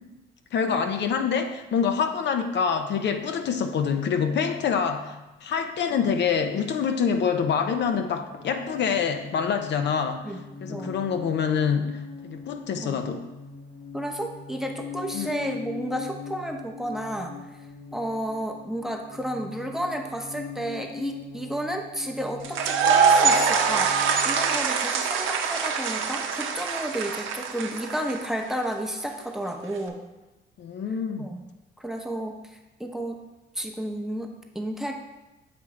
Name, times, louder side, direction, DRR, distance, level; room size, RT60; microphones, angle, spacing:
voice 1, 0.5-10.3 10.6-13.2 15.1-15.3 30.6-31.3, left 6 dB, 60° left, 7 dB, 0.5 m, -26 dB
sound 1, 7.8-24.5, left 5 dB, 45° left, 1.1 m, -41 dB
voice 2, 10.7-11.0 12.8-13.0 13.9-17.4 17.9-30.0 31.2-31.4 31.8-33.2 33.5-34.9, right 1 dB, ahead, 3 dB, 0.7 m, -32 dB
sound 2, 22.4-28.4, right 5 dB, 80° right, 0.7 m, -23 dB
7.7 x 3.0 x 4.8 m, 1.0 s
cardioid pair, 90°, 20 cm